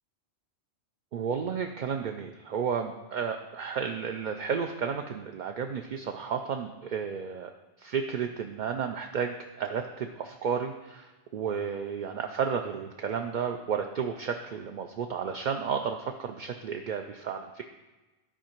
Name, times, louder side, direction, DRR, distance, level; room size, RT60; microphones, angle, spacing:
voice 1, 1.1-7.5 7.8-17.6, right 6 dB, 60° right, 4 dB, 0.5 m, -32 dB
11.5 x 4.8 x 4.5 m, 1.1 s
omnidirectional pair, 1.1 m